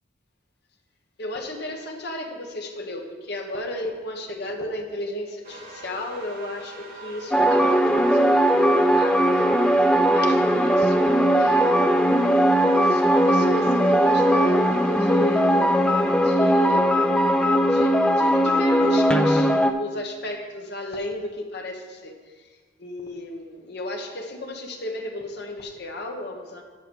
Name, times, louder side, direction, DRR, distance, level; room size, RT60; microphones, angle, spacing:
voice 1, 1.2-9.5 10.0-12.0 12.7-15.5 16.2-17.0 17.6-22.5 22.8-26.6, left 1 dB, 60° left, 1 dB, 1.2 m, -34 dB
sound 1, 5.4-16.4, right 3 dB, 50° right, 1.4 m, -42 dB
sound 2, 7.3-19.7, equal, 5° left, 0.3 m, -19 dB
7.8 x 6.9 x 6.3 m, 1.4 s
head